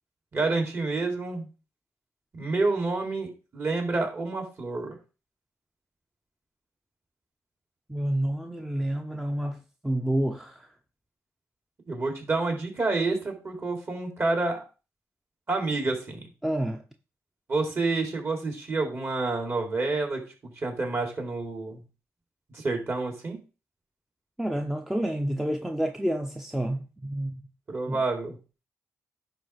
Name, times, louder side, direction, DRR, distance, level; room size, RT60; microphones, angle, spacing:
voice 1, 0.3-1.5 2.3-5.0 11.9-14.6 15.5-16.3 17.5-20.2 20.6-21.8 22.5-23.4 27.7-28.4, right 3 dB, 40° right, 3.6 m, -28 dB
voice 2, 7.9-9.6 9.8-10.7 16.4-16.8 24.4-27.4 27.9-28.0, right 1 dB, 5° right, 0.9 m, -29 dB
10.0 x 3.5 x 6.3 m
cardioid pair, 80°, 6 cm